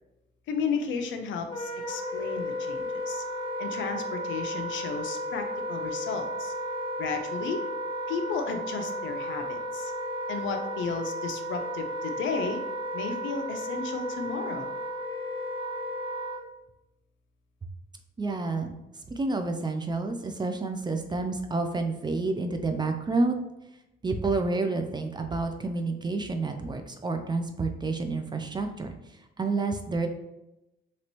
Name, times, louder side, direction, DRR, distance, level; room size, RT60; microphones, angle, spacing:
voice 1, 0.5-3.2 3.6-6.5 7.0-7.7 8.1-9.9 10.3-12.6 12.9-14.7, left 5 dB, 75° left, 6 dB, 0.5 m, -33 dB
Wind instrument woodwind instrument, 1.4-16.4, equal, 25° left, 0.7 m, -34 dB
voice 2, 18.2-18.7 19.2-23.4 24.0-28.9 29.4-30.1, right 3 dB, 20° right, 6 dB, 0.4 m, -29 dB
3.0 x 2.9 x 3.0 m, 0.92 s
cardioid pair, 90°, 20 cm